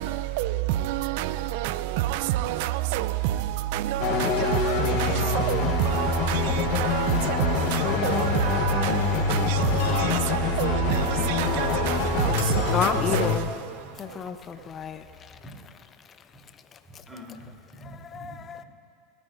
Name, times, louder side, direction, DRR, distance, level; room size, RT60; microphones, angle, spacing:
voice 1, 0.0-13.3, right 14 dB, 70° right, 0.4 m, -27 dB
sound 1, 4.0-13.4, left 6 dB, 60° left, 1.0 m, -26 dB
sound 2, 9.4-15.8, left 4 dB, 85° left, 3.0 m, -45 dB
voice 2, 9.4-9.7 10.6-11.9 13.8-13.9 15.4-15.5 16.9-18.7, equal, 5° right, 3.6 m, -41 dB
voice 3, 12.7-13.5 14.0-15.4 16.0-16.4 16.7-17.0 17.8-18.6, left 7 dB, 35° left, 0.5 m, -32 dB
27.5 x 9.8 x 2.6 m
hypercardioid pair, 100°, 0 cm